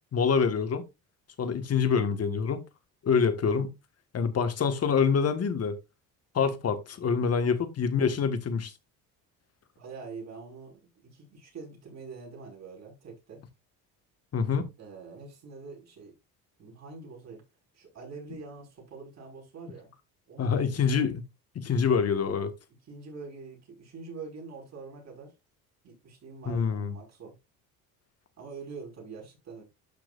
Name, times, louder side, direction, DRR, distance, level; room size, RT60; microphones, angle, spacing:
voice 1, 0.1-0.8 1.4-2.6 3.0-3.7 4.1-5.8 6.3-8.7 14.3-14.7 20.4-21.2 21.5-22.5 26.5-26.9, left 6 dB, 45° left, 1.7 m, -26 dB
voice 2, 9.8-13.4 14.8-16.2 16.6-17.4 17.7-19.9 20.3-21.1 22.1-22.4 22.8-25.3 25.8-27.4 28.4-29.6, right 4 dB, 45° right, 5.7 m, -45 dB
12.0 x 6.0 x 2.5 m
cardioid pair, 105°, 36 cm